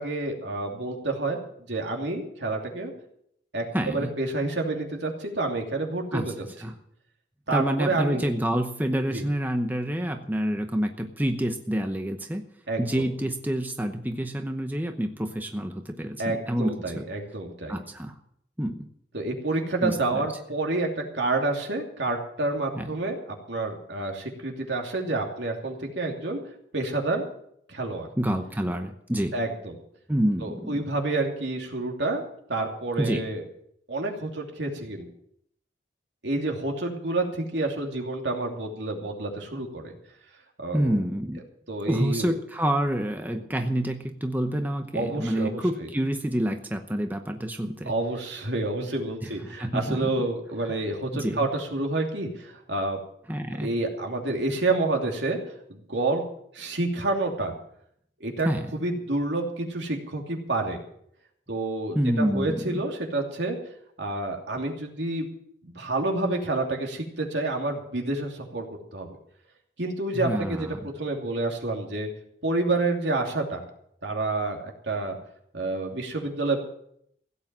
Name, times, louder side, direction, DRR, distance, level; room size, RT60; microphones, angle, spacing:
voice 1, 0.0-1.4 1.7-2.9 3.5-6.3 7.5-8.3 9.1-9.2 12.7-13.0 16.2-17.8 19.1-23.2 23.5-26.4 26.7-27.2 27.7-28.1 29.3-29.8 30.4-32.2 32.5-33.4 33.9-35.1 36.2-39.9 40.6-40.9 41.7-42.4 43.3-43.4 44.9-45.9 47.8-53.0 53.4-55.4 55.7-56.2 56.5-57.5 58.2-60.8 61.5-63.6 64.0-65.3 65.6-69.2 69.8-72.1 72.4-73.6 74.0-75.2 75.5-76.6, right 2 dB, 80° right, 1 dB, 2.8 m, -29 dB
voice 2, 3.7-4.1 6.1-6.3 6.6-6.7 7.5-12.4 12.8-17.0 17.7-18.1 18.6-18.9 19.8-20.3 22.7-22.9 28.2-29.3 30.1-30.8 33.0-33.3 40.7-41.4 41.9-47.9 49.2-50.1 51.1-51.5 53.3-53.7 58.4-58.7 61.9-62.8 70.1-70.9, right 1 dB, 10° right, 5 dB, 0.8 m, -28 dB
16.0 x 8.6 x 7.4 m, 0.70 s
head